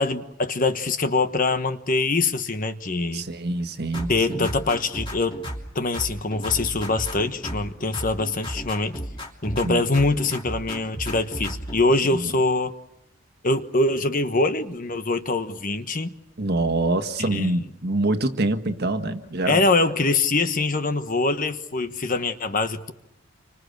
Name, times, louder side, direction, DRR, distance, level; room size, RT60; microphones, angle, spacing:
voice 1, 0.0-3.3 4.1-5.4 5.7-9.0 9.4-12.7 13.4-16.1 17.2-17.6 19.5-22.9, left 3 dB, 40° left, 9 dB, 1.2 m, -24 dB
voice 2, 3.1-4.5 9.6-9.8 12.1-12.3 16.4-19.6, right 2 dB, 50° right, 8 dB, 1.6 m, -25 dB
sound 1, 3.9-5.7 5.9-7.7 7.9-9.7 9.9-11.8, equal, 25° left, 3.0 m, -34 dB
30.0 x 25.0 x 6.7 m, 0.82 s
head